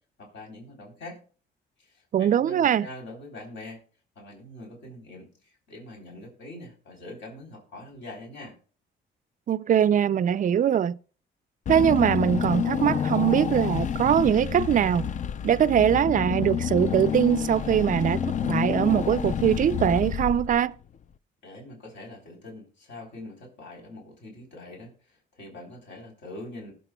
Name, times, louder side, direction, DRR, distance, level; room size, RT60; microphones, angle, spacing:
voice 1, 0.2-1.2 1.8-3.8 4.2-8.5 21.4-26.7, left 1 dB, 65° left, 3.6 m, -43 dB
voice 2, 2.1-2.9 9.5-11.0 11.7-15.1 15.4-20.8, right 9 dB, 40° right, 0.4 m, -22 dB
Car / Engine, 11.7-20.8, left 8 dB, 40° left, 0.4 m, -29 dB
20.0 x 7.2 x 2.2 m
cardioid pair, 90°, 20 cm